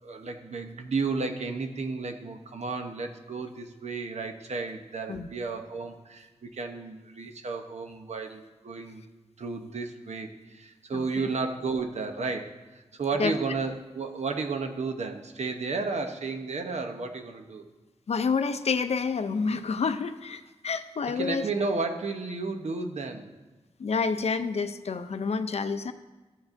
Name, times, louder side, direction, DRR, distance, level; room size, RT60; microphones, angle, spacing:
voice 1, 0.0-9.0 9.4-17.6 21.1-23.3, right 4 dB, 75° right, 5 dB, 0.8 m, -33 dB
voice 2, 10.9-11.3 13.2-13.3 18.1-21.5 23.8-25.9, left 5 dB, 65° left, 10 dB, 0.5 m, -28 dB
14.0 x 7.2 x 2.6 m, 1.2 s
wide cardioid pair, 105°, 11 cm